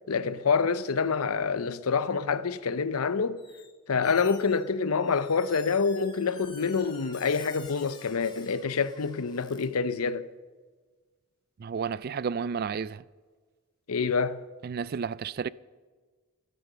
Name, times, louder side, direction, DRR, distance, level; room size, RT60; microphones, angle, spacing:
voice 1, 0.1-3.4 3.9-10.3 13.9-14.4, left 5 dB, 85° left, 0.7 m, -27 dB
Squeak, 3.4-3.7 4.0-9.7, left 4 dB, 20° left, 1.8 m, -50 dB
voice 2, 11.6-13.0 14.6-15.5, right 6 dB, 45° right, 0.3 m, -32 dB
13.0 x 12.0 x 6.7 m
head